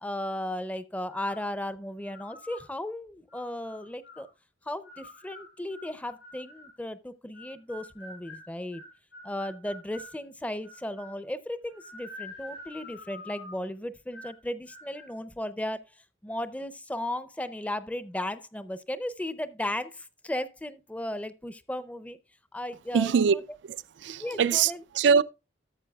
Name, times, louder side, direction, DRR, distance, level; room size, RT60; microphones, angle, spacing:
voice 1, 0.0-4.3 4.7-8.8 9.2-15.8 16.2-22.2 22.5-23.4 24.2-24.8, left 1 dB, 10° left, 0.5 m, -35 dB
sound 1, 1.1-1.5 2.0-2.7 3.3-4.3 4.8-6.8 7.3-10.2 10.6-11.2 11.7-13.7 14.1-14.4 14.7-15.1, left 2 dB, 80° left, 6.7 m, -47 dB
voice 2, 22.9-23.4 23.6-25.2, right 6 dB, 90° right, 0.4 m, -23 dB
13.0 x 7.5 x 2.3 m
head